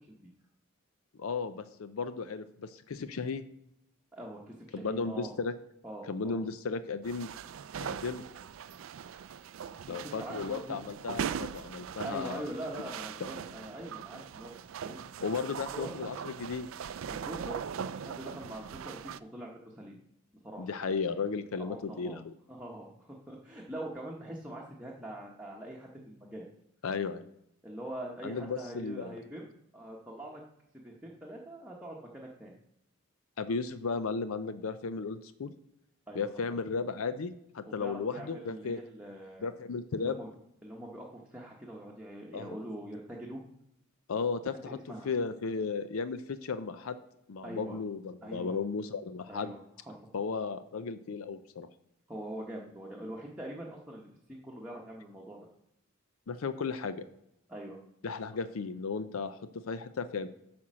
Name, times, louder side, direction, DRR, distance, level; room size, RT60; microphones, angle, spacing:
voice 1, 1.2-3.4 4.7-5.5 6.1-7.3 7.8-8.2 9.9-12.4 15.2-16.7 20.6-22.3 26.8-27.2 28.2-29.2 33.4-35.5 36.1-38.8 39.4-40.2 42.3-42.6 44.1-44.8 45.0-47.0 47.3-49.5 50.1-51.7 56.3-57.0 58.0-60.3, left 5 dB, 80° left, 12 dB, 0.5 m, -35 dB
voice 2, 4.1-5.3 5.8-6.4 9.7-10.8 12.0-14.5 14.8-15.1 15.7-15.9 17.1-20.0 20.4-20.7 21.6-22.2 22.5-26.4 27.6-29.4 29.7-30.4 30.8-32.5 36.1-36.3 37.6-39.5 40.0-40.3 40.6-43.4 44.7-45.1 47.4-47.8 48.2-48.6 49.3-49.6 49.9-50.0 52.1-55.4 57.5-57.8, right 1 dB, 5° right, -3 dB, 1.0 m, -43 dB
sound 1, 7.0-19.2, right 7 dB, 70° right, 0.3 m, -40 dB
8.5 x 4.3 x 6.2 m, 0.80 s
head